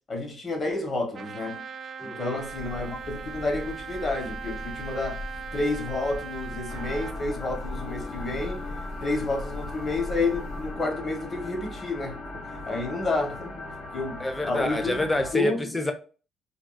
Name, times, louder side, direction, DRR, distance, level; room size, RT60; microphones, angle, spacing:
voice 1, 0.1-1.6 2.0-5.3 5.5-8.7 9.0-12.2 12.5-13.5 13.9-15.0 15.3-15.7, left 2 dB, 35° left, 1.1 m, -30 dB
Trumpet, 1.1-7.2, right 6 dB, 45° right, 0.3 m, -39 dB
voice 2, 2.0-2.4 14.2-15.9, left 1 dB, 15° left, 0.5 m, -28 dB
Breathing / Bird, 2.3-10.9, left 2 dB, 85° left, 1.1 m, -39 dB
sound 1, 6.7-15.3, left 2 dB, 65° left, 0.7 m, -39 dB
3.5 x 2.3 x 2.4 m
cardioid pair, 115°, 0 cm